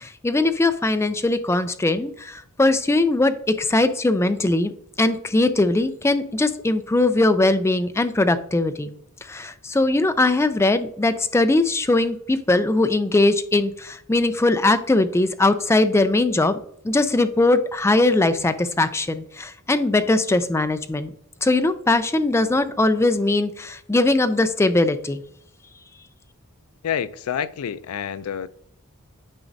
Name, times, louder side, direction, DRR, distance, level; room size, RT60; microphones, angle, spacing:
voice 1, 0.0-4.7 5.0-8.9 9.3-16.6 16.8-21.1 21.4-25.2, left 2 dB, 10° left, 0.3 m, -20 dB
voice 2, 26.8-28.5, left 8 dB, 80° left, 0.4 m, -28 dB
8.9 x 5.0 x 2.6 m
head